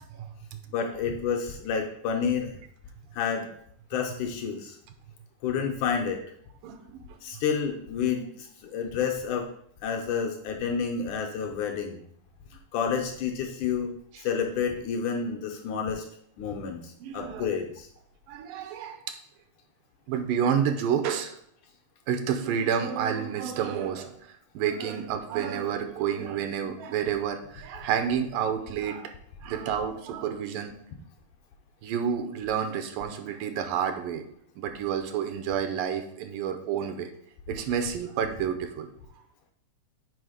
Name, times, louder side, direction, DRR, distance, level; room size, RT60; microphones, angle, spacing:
voice 1, 0.7-2.5 3.1-3.5 3.9-4.8 5.4-6.2 7.2-9.5 9.8-12.0 12.7-13.9 14.2-16.1 16.4-17.9, left 6 dB, 75° left, 2 dB, 2.0 m, -29 dB
voice 2, 6.6-7.1 14.1-14.2 17.0-17.5 18.3-19.0 20.1-21.4 22.1-24.1 24.5-29.1 29.4-30.7 31.8-34.2 34.6-37.1 37.5-38.9, right 8 dB, 85° right, 7 dB, 2.4 m, -29 dB
6.2 x 4.8 x 4.9 m, 0.68 s
omnidirectional pair, 3.9 m